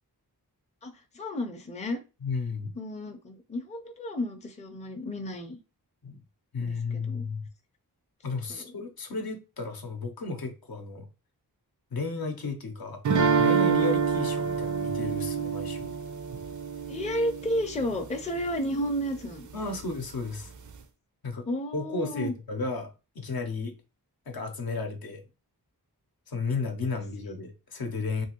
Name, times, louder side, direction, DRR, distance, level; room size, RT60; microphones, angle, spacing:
voice 1, 0.8-2.0 2.7-5.6 6.6-7.3 8.5-8.7 16.9-19.5 21.4-22.3, equal, 20° left, 0.5 m, -32 dB
voice 2, 2.2-2.7 6.0-6.2 6.5-7.4 8.2-11.1 11.9-13.0 13.4-15.9 19.5-20.5 21.2-21.5 21.7-22.9 23.2-23.7 24.3-25.2 26.3-28.3, left 3 dB, 65° left, 0.7 m, -33 dB
sound 1, 13.1-18.0, right 6 dB, 50° right, 0.4 m, -27 dB
2.7 x 2.6 x 2.9 m
wide cardioid pair, 65°, 39 cm